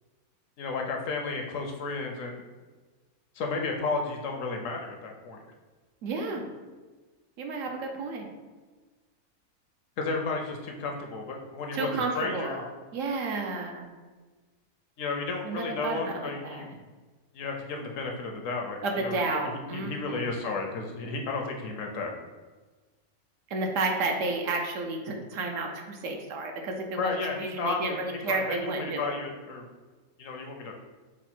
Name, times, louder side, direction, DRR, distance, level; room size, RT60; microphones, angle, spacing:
voice 1, 0.6-2.4 3.4-5.4 10.0-12.6 15.0-16.7 17.3-22.1 27.0-29.7 30.2-30.7, left 3 dB, 70° left, 2 dB, 0.9 m, -33 dB
voice 2, 6.0-6.4 7.4-8.3 11.7-12.6 12.9-13.9 15.4-16.6 18.8-20.2 23.5-29.1, right 3 dB, 70° right, 2 dB, 0.9 m, -31 dB
5.0 x 2.1 x 4.3 m, 1.3 s
omnidirectional pair, 1.5 m